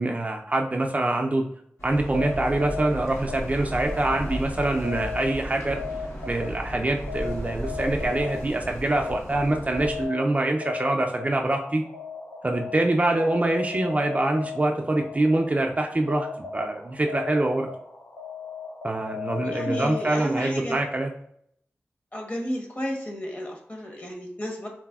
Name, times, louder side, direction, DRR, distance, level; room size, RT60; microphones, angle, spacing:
voice 1, 0.0-1.5 1.8-5.8 6.3-11.8 12.4-16.3 16.5-17.7 18.8-21.1, right 2 dB, 35° right, 2 dB, 0.3 m, -25 dB
sound 1, 1.8-10.0, equal, 70° left, 0.9 m, -35 dB
sound 2, 2.0-20.5, left 5 dB, 85° left, 0.4 m, -37 dB
voice 2, 19.4-20.8 22.1-24.7, equal, 35° left, 0 dB, 0.9 m, -32 dB
3.9 x 2.1 x 2.3 m, 0.68 s
wide cardioid pair, 60°, 5 cm